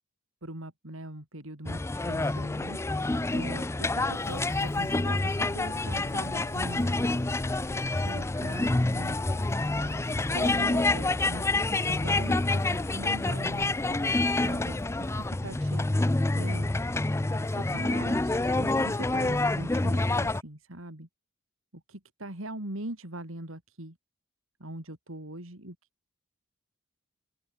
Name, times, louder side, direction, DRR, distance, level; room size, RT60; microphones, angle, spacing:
voice 1, 0.4-7.5 8.0-9.2 9.8-14.8 15.1-16.7 17.4-21.1 21.7-24.0 24.6-25.8, right 1 dB, 70° right, 3.8 m, -42 dB
sound 1, 1.7-20.4, left 2 dB, 10° left, 0.4 m, -28 dB
Walk footsteps, 4.1-15.4, left 2 dB, 65° left, 1.5 m, -48 dB
open air
head